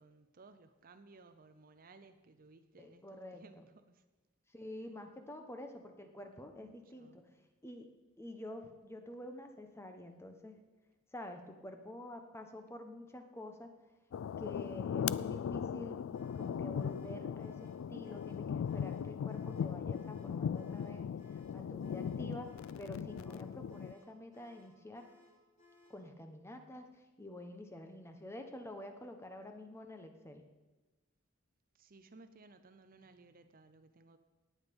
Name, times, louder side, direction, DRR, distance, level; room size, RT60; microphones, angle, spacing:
voice 1, 0.0-4.0 6.5-7.3 31.7-34.2, right 3 dB, 45° right, 10 dB, 0.7 m, -60 dB
voice 2, 2.8-3.7 4.5-7.3 7.6-7.9 8.2-10.6 11.1-13.7 14.4-16.0 16.3-22.5 22.8-25.1 25.9-26.9 27.2-30.4, left 1 dB, 10° left, 6 dB, 1.1 m, -48 dB
sound 1, 14.1-23.9, left 7 dB, 65° left, 0.3 m, -38 dB
sound 2, 16.1-26.1, left 2 dB, 30° left, 4.2 m, -65 dB
17.5 x 9.0 x 5.3 m, 1.2 s
head